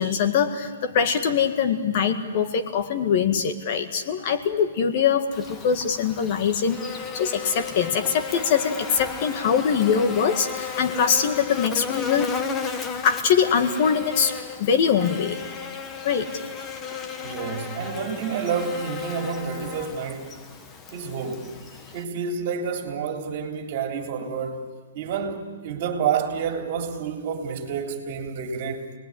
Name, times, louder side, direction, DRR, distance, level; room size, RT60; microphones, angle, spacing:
voice 1, 0.0-12.3 13.0-15.4 16.0-16.3, left 7 dB, 45° left, 8 dB, 1.9 m, -23 dB
Buzz, 5.3-22.0, left 6 dB, 15° left, 1.4 m, -34 dB
voice 2, 17.2-20.3 20.9-21.5 21.9-24.6 24.9-28.9, right 6 dB, 40° right, 5 dB, 3.6 m, -29 dB
28.0 x 20.0 x 9.9 m, 1.3 s
hypercardioid pair, 160°, 0 cm